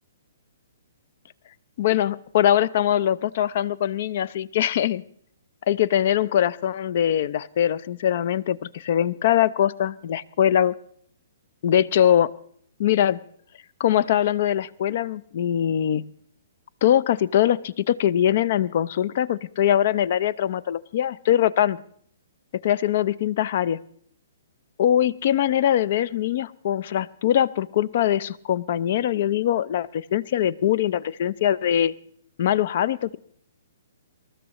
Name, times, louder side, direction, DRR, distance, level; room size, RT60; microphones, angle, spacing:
voice 1, 1.8-5.0 5.7-10.7 11.6-12.3 12.8-13.2 13.8-16.1 16.8-21.8 22.6-23.8 24.8-31.9 32.4-33.2, left 10 dB, 45° left, 20 dB, 0.5 m, -22 dB
26.0 x 13.5 x 3.0 m, 0.63 s
figure-of-eight pair, 120°, 0 cm